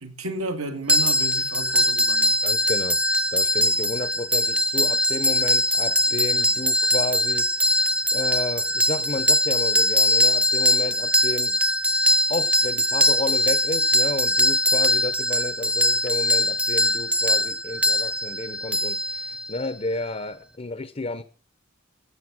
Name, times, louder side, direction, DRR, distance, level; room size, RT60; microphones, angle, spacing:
voice 1, 0.0-2.4, right 2 dB, 80° right, 2.1 m, -33 dB
sound 1, 0.9-19.7, equal, 5° right, 0.6 m, -22 dB
voice 2, 2.4-3.0 3.3-7.7 8.1-11.6 12.3-21.2, left 2 dB, 30° left, 0.6 m, -31 dB
15.5 x 7.9 x 6.1 m
head